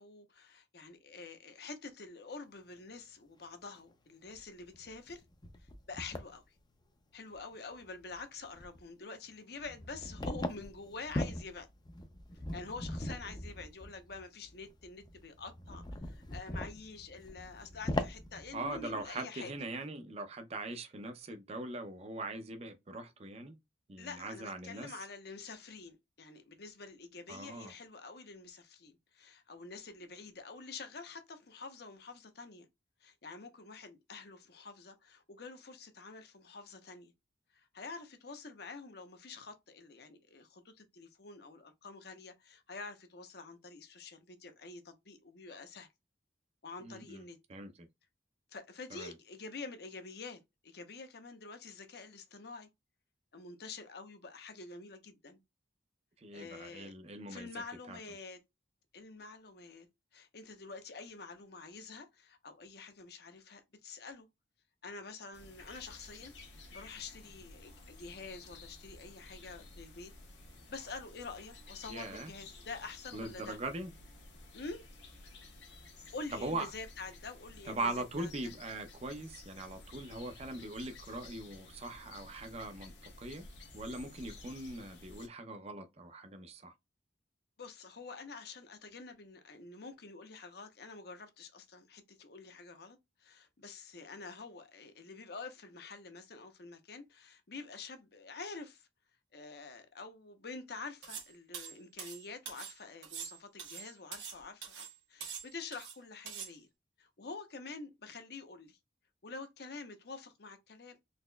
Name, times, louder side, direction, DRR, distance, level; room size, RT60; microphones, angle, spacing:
voice 1, 0.0-5.2 5.6-6.4 7.1-11.7 12.5-19.5 24.0-32.7 33.0-37.1 37.5-45.9 46.6-47.4 48.5-52.7 53.3-55.4 56.3-56.9 57.3-58.4 58.9-59.9 60.1-64.3 64.8-70.1 70.7-73.6 74.5-74.8 76.1-77.9 78.2-78.3 87.6-98.9 99.3-106.7 107.0-108.8 109.2-111.0, left 4 dB, 60° left, 0.8 m, -47 dB
sound 1, 3.8-3.9 4.3-4.4 4.7-6.3 7.3-7.4 7.8-8.2 8.4-8.8 9.6-19.0, left 1 dB, 25° left, 0.5 m, -41 dB
voice 2, 18.5-23.5 23.9-25.0 27.3-27.7 46.8-47.2 47.5-47.9 48.9-49.1 56.2-57.5 57.9-58.0 71.9-72.3 73.1-73.9 76.3-76.7 77.7-83.5 83.7-86.7, right 2 dB, 35° right, 0.5 m, -41 dB
Forrest birds Norway, 65.3-85.3, left 2 dB, 80° left, 1.2 m, -53 dB
sound 2, 101.0-101.3 101.5-102.7 103.0-104.4 104.6-104.9 105.2-106.0 106.3-106.5, right 7 dB, 85° right, 1.4 m, -44 dB
4.1 x 2.9 x 2.2 m
head